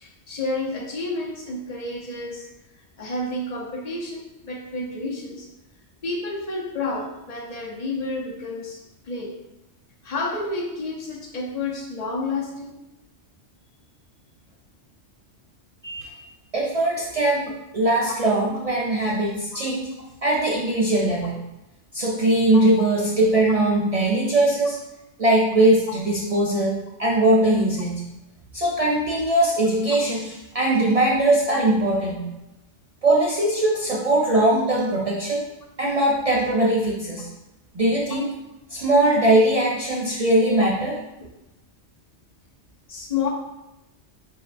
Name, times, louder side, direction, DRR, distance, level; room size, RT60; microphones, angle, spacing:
voice 1, 0.0-2.5 3.0-5.5 6.0-9.4 10.0-12.7 22.5-22.9 25.9-26.0 40.5-40.7 42.9-43.3, left 3 dB, 45° left, 0 dB, 0.6 m, -30 dB
voice 2, 15.8-16.1 16.5-19.9 20.2-21.4 21.9-24.8 25.2-28.0 28.5-32.3 33.0-35.4 35.8-37.3 37.7-38.3 38.7-41.0, right 1 dB, 60° right, -4 dB, 0.3 m, -21 dB
6.3 x 2.2 x 2.4 m, 0.93 s
omnidirectional pair, 1.2 m